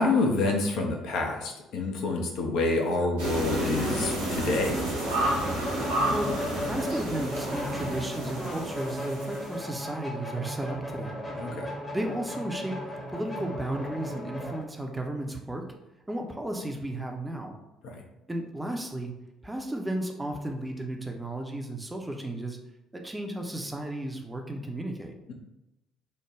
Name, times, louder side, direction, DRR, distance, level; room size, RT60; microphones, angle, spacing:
voice 1, 0.0-4.8 11.3-11.7 17.8-18.0, left 3 dB, 60° left, 1 dB, 0.5 m, -27 dB
sound 1, 3.2-9.6, right 1 dB, 75° right, 0.8 m, -30 dB
sound 2, 5.0-14.6, equal, 20° left, 0.8 m, -36 dB
voice 2, 6.6-11.2 11.9-12.8 13.1-15.6 16.1-17.5 18.3-19.1 19.4-22.6 22.9-25.1, right 1 dB, 10° right, 2 dB, 0.5 m, -34 dB
3.2 x 2.1 x 3.5 m, 0.95 s
figure-of-eight pair, 50°, 0 cm